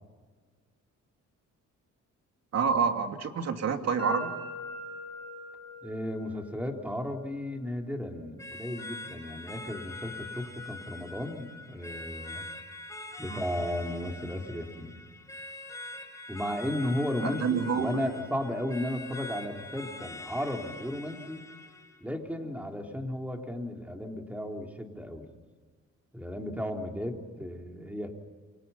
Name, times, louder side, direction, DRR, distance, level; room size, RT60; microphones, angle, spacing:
voice 1, 2.5-4.3 13.3-13.4 17.2-18.1, right 6 dB, 60° right, 6 dB, 2.7 m, -28 dB
sound 1, 4.0-11.8, left 1 dB, 35° left, 5.2 m, -45 dB
voice 2, 5.8-12.5 13.2-15.0 16.3-21.4 22.0-25.3 26.1-28.1, left 1 dB, 5° right, 2 dB, 3.8 m, -34 dB
sound 2, 8.4-22.0, left 2 dB, 10° left, 4.2 m, -44 dB
28.5 x 24.5 x 5.8 m, 1.5 s
cardioid pair, 90°, 30 cm